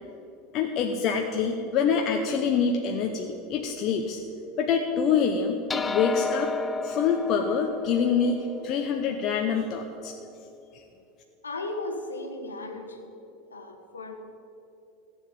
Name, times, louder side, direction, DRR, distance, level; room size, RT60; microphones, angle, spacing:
voice 1, 0.5-4.2 4.6-6.5 6.8-10.1, left 6 dB, 45° left, 3 dB, 1.0 m, -26 dB
sound 1, 5.7-10.4, left 4 dB, 20° left, 0.5 m, -33 dB
voice 2, 11.4-13.1 13.5-14.1, left 2 dB, 85° left, 4 dB, 1.4 m, -36 dB
14.5 x 7.3 x 8.7 m, 2.8 s
figure-of-eight pair, 80°, 0 cm